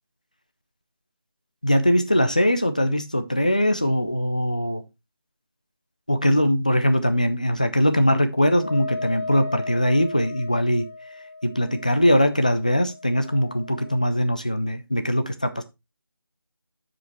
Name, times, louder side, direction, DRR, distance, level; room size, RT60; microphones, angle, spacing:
voice 1, 1.6-4.8 6.1-10.9 11.4-15.6, equal, 20° left, 0.4 m, -21 dB
Wind instrument woodwind instrument, 8.5-14.2, left 3 dB, 40° left, 1.9 m, -36 dB
14.5 x 5.0 x 3.0 m
figure-of-eight pair, 165°, 12 cm